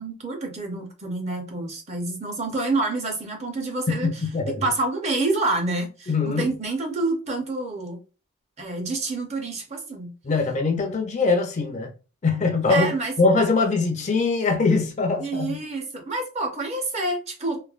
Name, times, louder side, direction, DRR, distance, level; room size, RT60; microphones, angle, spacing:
voice 1, 0.0-4.1 4.6-8.0 8.6-10.1 12.7-13.1 15.2-17.6, right 2 dB, 30° right, 0.6 m, -27 dB
voice 2, 4.0-4.7 6.1-6.5 10.2-11.9 12.2-15.6, left 4 dB, 35° left, 0.4 m, -22 dB
3.1 x 2.1 x 2.3 m
head